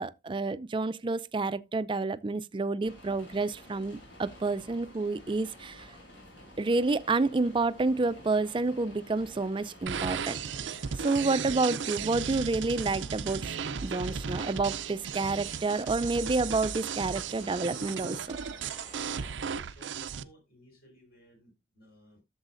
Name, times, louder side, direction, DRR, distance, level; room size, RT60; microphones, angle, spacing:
voice 1, 0.0-5.9 6.6-10.7 11.0-13.5 13.8-18.4, right 3 dB, 25° right, 0.4 m, -29 dB
sound 1, 2.8-19.3, left 1 dB, 80° left, 4.2 m, -51 dB
sound 2, 9.9-20.2, right 7 dB, 85° right, 0.5 m, -35 dB
voice 2, 19.3-22.2, equal, 55° left, 4.8 m, -58 dB
12.0 x 7.1 x 2.5 m
head